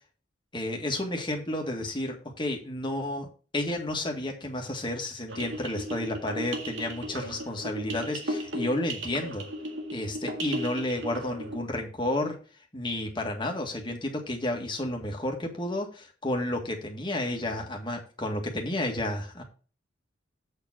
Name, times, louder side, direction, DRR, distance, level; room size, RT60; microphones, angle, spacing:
voice 1, 0.5-9.5 9.9-12.4 12.7-19.4, left 1 dB, 25° left, 1 dB, 1.8 m, -31 dB
sound 1, 5.3-11.6, equal, 85° right, 1.8 m, -36 dB
7.9 x 4.5 x 6.0 m, 0.37 s
head